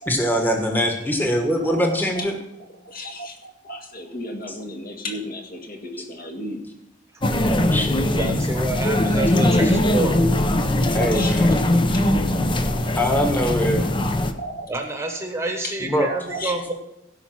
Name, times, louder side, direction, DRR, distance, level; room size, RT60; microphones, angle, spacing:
voice 1, 0.0-2.3 7.4-8.2 9.6-9.7 10.9-11.6 13.0-13.9 15.8-16.1, equal, 10° left, 2 dB, 1.5 m, -23 dB
voice 2, 1.3-2.3 2.8-6.7 8.8-9.0 9.3-11.5 11.9-13.0 14.4-15.2 15.6-15.8 16.1-16.7, left 1 dB, 50° left, 2 dB, 2.0 m, -36 dB
sound 1, 7.2-14.3, left 1 dB, 25° left, 0.7 m, -20 dB
voice 3, 8.1-10.2 14.7-16.7, right 2 dB, 15° right, 4 dB, 1.2 m, -28 dB
16.0 x 5.6 x 6.0 m, 0.88 s
head